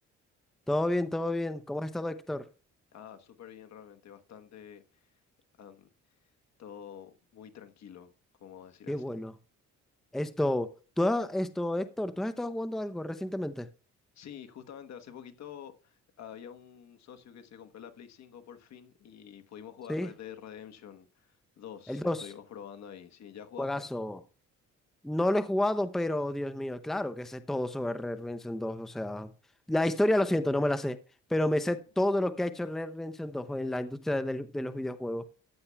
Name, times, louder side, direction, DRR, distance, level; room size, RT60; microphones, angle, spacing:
voice 1, 0.7-2.5 8.9-9.3 10.1-13.7 19.9-20.1 21.9-22.3 23.6-24.2 25.0-29.3 29.7-31.0 31.3-35.2, left 1 dB, ahead, 0.6 m, -30 dB
voice 2, 2.9-4.8 5.6-5.9 6.6-8.1 8.4-9.2 14.1-23.9, left 9 dB, 65° left, 1.2 m, -48 dB
14.5 x 9.6 x 2.3 m
cardioid pair, 90°, 30 cm